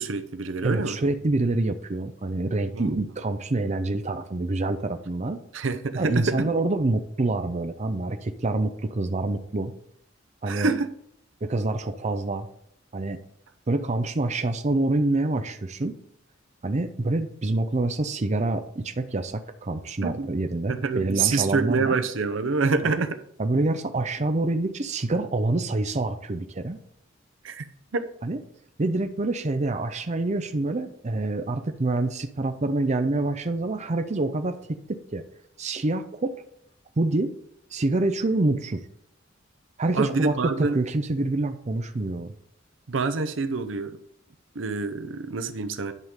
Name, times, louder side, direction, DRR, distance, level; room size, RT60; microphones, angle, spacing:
voice 1, 0.0-1.0 2.7-3.0 5.5-6.5 10.5-10.9 20.0-20.3 20.7-23.2 27.4-28.1 39.9-40.7 42.9-44.0 44.5-45.9, right 4 dB, 75° right, 0.7 m, -26 dB
voice 2, 0.6-5.4 6.0-9.7 10.4-10.7 11.4-12.5 12.9-13.2 13.7-15.9 16.6-22.0 22.8-23.0 23.4-26.8 28.2-28.4 28.8-35.2 35.6-36.4 37.0-37.3 37.7-38.8 39.8-42.3, right 2 dB, 35° right, 0.6 m, -26 dB
10.5 x 3.7 x 6.5 m
head